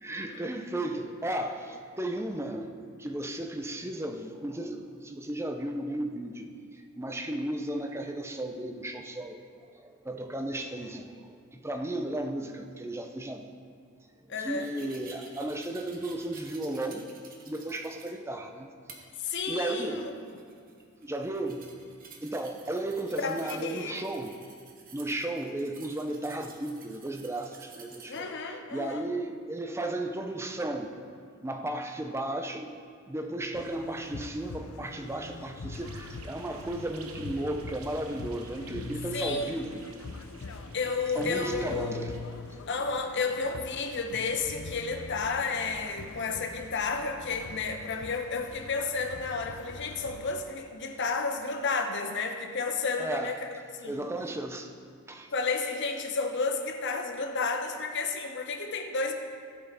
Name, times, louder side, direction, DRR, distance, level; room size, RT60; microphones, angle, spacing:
voice 1, 0.0-2.7 3.0-9.4 9.7-13.5 14.2-17.0 17.5-18.7 19.5-20.1 21.0-21.6 22.2-24.3 24.9-30.9 31.4-32.7 33.1-39.8 41.1-42.1 53.0-53.4 53.8-54.7 55.1-55.3, right 1 dB, 10° right, 4 dB, 0.6 m, -34 dB
voice 2, 14.3-14.7 19.2-20.3 23.2-24.0 28.1-29.1 39.1-39.5 40.7-42.1 42.7-54.1 55.3-59.1, left 4 dB, 55° left, 5 dB, 0.9 m, -32 dB
sound 1, 14.6-18.1 18.9-19.0 19.7-28.2, right 4 dB, 40° right, 1.2 m, -52 dB
sound 2, 33.5-50.4, left 4 dB, 70° left, 0.6 m, -43 dB
sound 3, 35.7-42.8, right 4 dB, 85° right, 0.8 m, -52 dB
17.0 x 5.7 x 4.1 m, 2.2 s
head